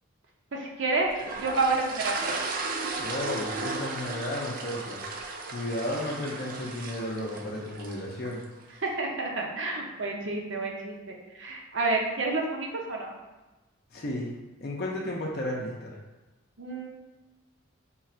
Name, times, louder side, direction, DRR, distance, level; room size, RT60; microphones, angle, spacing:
voice 1, 0.5-1.1 1.4-2.4 8.8-13.2 16.6-17.0, right 3 dB, 65° right, 0 dB, 0.7 m, -29 dB
sound 1, 1.1-8.4, right 3 dB, 40° right, 0.3 m, -35 dB
voice 2, 3.0-5.0 5.5-8.4 13.9-14.3 14.6-16.0, left 1 dB, 50° left, -2 dB, 0.5 m, -33 dB
3.8 x 2.5 x 4.3 m, 1.1 s
head